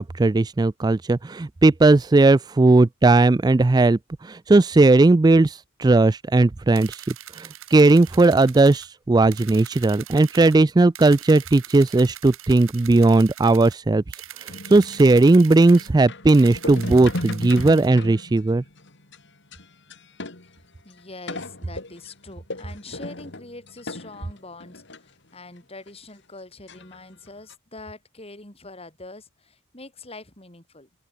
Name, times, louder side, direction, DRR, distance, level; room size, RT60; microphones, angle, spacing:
voice 1, 0.0-14.0 14.4-18.6, right 2 dB, 20° right, 0.3 m, -17 dB
sound 1, 6.8-8.9 9.3-10.6 10.9-13.8 14.1-15.9 16.3-17.9, right 12 dB, 70° right, 2.5 m, -42 dB
sound 2, 14.5-20.7 20.9-21.0 21.3-25.0 25.6-25.7 25.9-26.0 26.7-27.0 27.3-27.5, left 2 dB, 55° left, 3.0 m, -36 dB
voice 2, 20.8-30.9, left 2 dB, 25° left, 4.1 m, -43 dB
open air
head